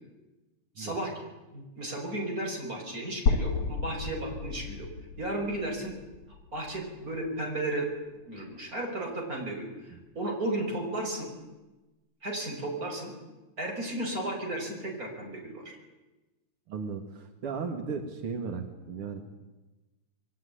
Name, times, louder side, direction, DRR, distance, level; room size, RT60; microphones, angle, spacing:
voice 1, 0.8-1.1 1.5-4.9 5.2-6.0 6.5-7.9 8.2-11.3 12.2-13.1 13.6-15.8, right 1 dB, 20° right, 1 dB, 5.7 m, -34 dB
sound 1, 3.3-7.2, left 4 dB, 70° left, 1.3 m, -32 dB
voice 2, 16.7-19.3, right 5 dB, 60° right, 5 dB, 1.5 m, -36 dB
27.0 x 22.0 x 10.0 m, 1.1 s
omnidirectional pair, 5.3 m